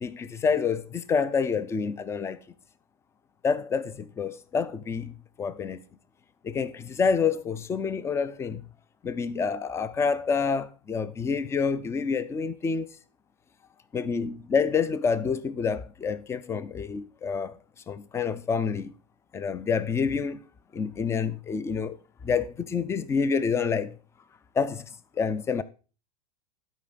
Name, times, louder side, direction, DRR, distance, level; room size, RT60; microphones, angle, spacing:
voice 1, 0.0-2.4 3.4-5.8 6.4-8.6 9.0-12.9 13.9-17.5 17.9-18.9 19.3-20.4 20.7-22.0 22.2-24.0 24.5-25.6, left 5 dB, 15° left, 0.4 m, -28 dB
12.0 x 5.0 x 4.0 m
supercardioid pair, 140°, 19 cm